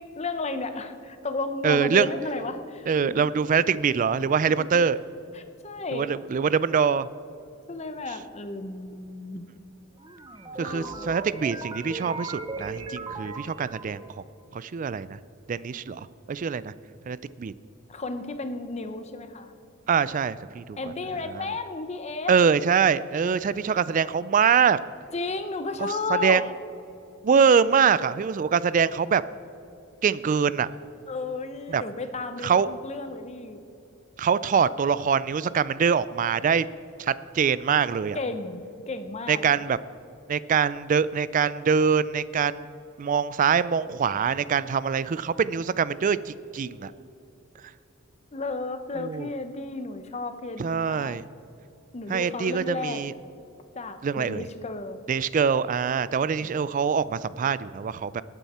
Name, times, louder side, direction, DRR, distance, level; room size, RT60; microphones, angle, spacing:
voice 1, 0.0-3.3 4.6-4.7 5.3-6.1 7.7-9.5 10.6-11.2 17.9-19.5 20.8-22.3 25.1-26.4 31.1-33.6 38.1-39.4 46.7-46.8 48.3-51.2 51.9-53.0 53.7-55.0 56.4-56.5, left 3 dB, 30° left, 9 dB, 0.7 m, -33 dB
voice 2, 1.6-2.1 2.9-5.0 5.9-7.1 10.6-14.0 14.5-15.2 15.5-16.7 17.1-17.5 19.9-20.8 21.3-21.5 22.3-24.8 25.8-26.4 27.2-29.2 30.0-30.7 31.7-31.8 32.4-32.7 34.2-36.7 37.0-38.2 39.3-39.8 40.3-42.7 43.0-46.9 49.0-49.3 50.6-51.3 52.1-53.1 54.0-54.4 55.1-58.2, right 6 dB, 40° right, 17 dB, 0.3 m, -24 dB
sound 1, 10.0-14.2, right 3 dB, 20° right, 0.7 m, -37 dB
19.5 x 9.1 x 4.3 m, 2.7 s
head